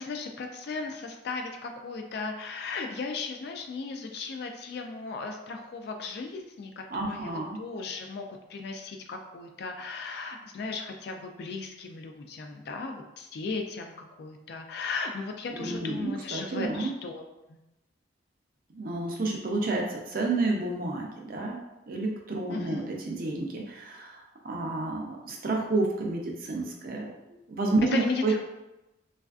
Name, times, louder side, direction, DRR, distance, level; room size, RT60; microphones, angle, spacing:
voice 1, 0.0-17.6 22.5-22.9 27.9-28.4, left 4 dB, 55° left, 4 dB, 0.3 m, -36 dB
voice 2, 6.9-7.6 15.6-16.9 18.7-21.6 21.9-28.4, right 2 dB, 45° right, 0 dB, 0.5 m, -30 dB
3.2 x 2.4 x 2.3 m, 0.96 s
head